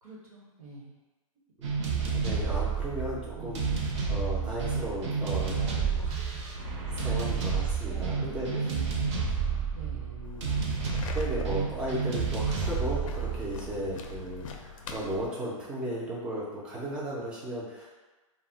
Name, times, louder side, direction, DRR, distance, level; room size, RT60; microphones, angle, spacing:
voice 1, 0.0-0.9 3.3-3.8 4.2-4.5 4.9-7.3 7.9-10.2, right 1 dB, 80° right, -4 dB, 1.0 m, -45 dB
voice 2, 1.6-3.6 4.1-5.6 6.9-8.5 9.9-10.6 11.1-17.9, right 1 dB, 5° right, -6 dB, 0.3 m, -35 dB
sound 1, 1.6-14.4, right 5 dB, 55° right, 0.6 m, -30 dB
sound 2, 10.2-15.3, left 5 dB, 65° left, 0.4 m, -44 dB
2.2 x 2.0 x 3.7 m, 1.2 s
hypercardioid pair, 160°, 18 cm